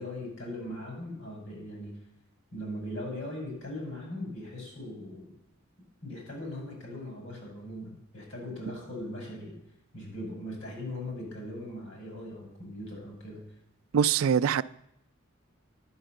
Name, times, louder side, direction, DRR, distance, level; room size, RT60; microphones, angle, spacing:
voice 1, 0.0-1.9 2.5-5.3 6.0-9.6 9.9-13.4, left 1 dB, 70° left, 6.1 m, -39 dB
voice 2, 13.9-14.6, right 7 dB, 85° right, 0.4 m, -23 dB
11.0 x 8.7 x 6.6 m
head